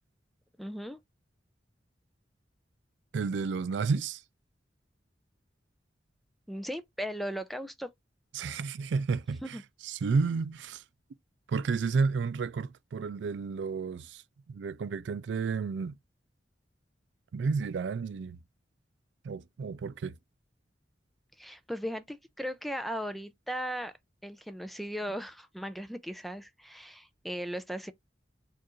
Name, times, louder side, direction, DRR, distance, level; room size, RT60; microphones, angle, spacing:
voice 1, 0.6-1.0 6.5-7.9 9.4-9.6 21.4-23.9 24.2-27.9, equal, ahead, 0.4 m, -37 dB
voice 2, 3.1-4.2 8.3-9.6 9.8-10.8 11.5-14.2 14.5-16.0 17.3-18.4 19.2-20.2, right 4 dB, 80° right, 0.4 m, -31 dB
4.5 x 2.5 x 2.9 m
head